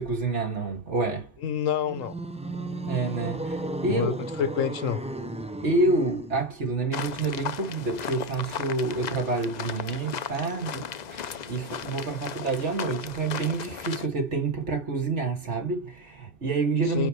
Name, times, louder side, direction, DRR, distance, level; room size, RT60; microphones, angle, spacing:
voice 1, 0.0-1.3 2.8-4.2 5.6-17.1, right 3 dB, 60° right, 2.5 m, -28 dB
voice 2, 1.4-2.2 3.9-5.0 16.8-17.1, left 8 dB, 75° left, 1.2 m, -28 dB
sound 1, 1.8-6.5, right 2 dB, 10° right, 0.3 m, -34 dB
sound 2, 6.9-14.1, left 8 dB, 55° left, 0.4 m, -36 dB
9.8 x 3.9 x 3.1 m
omnidirectional pair, 1.4 m